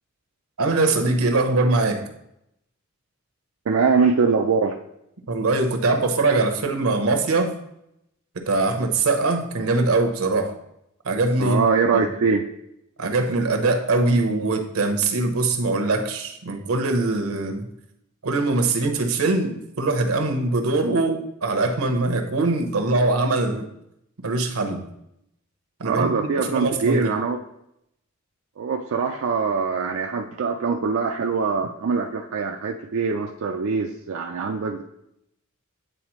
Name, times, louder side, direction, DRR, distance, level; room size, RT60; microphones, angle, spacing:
voice 1, 0.6-2.0 5.3-7.5 8.3-10.5 11.0-11.6 11.9-12.1 13.0-17.7 18.2-23.7 24.2-24.8 25.8-27.1, right 3 dB, 90° right, 4 dB, 0.9 m, -22 dB
voice 2, 3.7-4.8 11.4-12.5 25.8-27.4 28.6-34.8, right 5 dB, 65° right, 2 dB, 0.4 m, -23 dB
9.1 x 3.9 x 3.0 m, 0.80 s
head